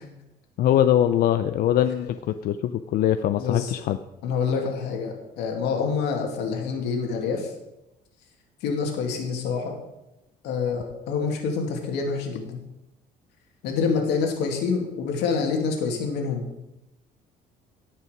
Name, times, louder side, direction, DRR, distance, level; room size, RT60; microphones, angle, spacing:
voice 1, 0.6-4.0, left 11 dB, 65° left, 10 dB, 0.5 m, -22 dB
voice 2, 3.4-3.7 4.2-7.5 8.6-9.7 10.4-12.6 13.6-16.5, left 5 dB, 90° left, 2 dB, 2.3 m, -27 dB
17.0 x 5.7 x 5.1 m, 0.94 s
cardioid pair, 110°, 17 cm